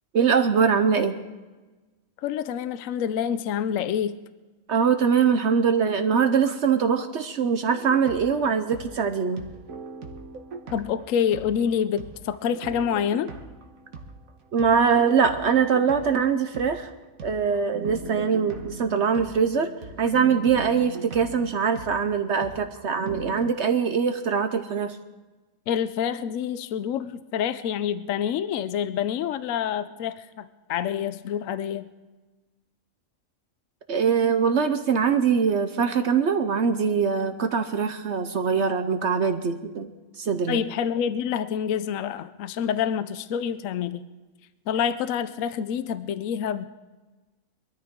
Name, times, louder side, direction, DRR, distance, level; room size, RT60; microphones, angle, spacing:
voice 1, 0.1-1.2 4.7-9.4 14.5-16.9 17.2-19.7 20.0-25.0 33.9-39.9 40.2-40.6, right 6 dB, 60° right, 8 dB, 1.0 m, -23 dB
voice 2, 2.2-4.1 10.7-13.3 25.7-31.9 40.5-44.0 44.7-46.6, left 8 dB, 75° left, 13 dB, 1.0 m, -27 dB
sound 1, 7.7-11.7 12.0-23.5, right 4 dB, 80° right, 1.7 m, -40 dB
22.5 x 13.5 x 3.7 m, 1.2 s
omnidirectional pair, 1.4 m